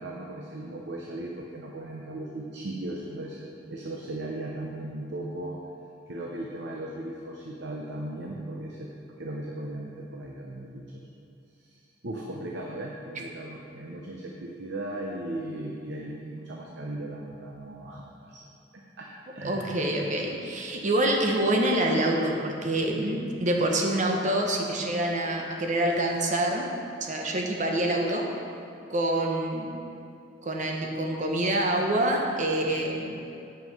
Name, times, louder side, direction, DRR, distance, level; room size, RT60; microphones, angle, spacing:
voice 1, 0.0-3.4 3.7-5.6 6.1-11.0 11.6-11.8 12.0-18.4 19.0-19.1 19.3-19.8, right 1 dB, 65° right, -2 dB, 0.8 m, -37 dB
voice 2, 19.4-26.7 27.0-28.3 28.9-29.7 30.4-33.2, right 1 dB, 40° right, 1 dB, 1.0 m, -26 dB
9.3 x 5.6 x 5.5 m, 2.5 s
head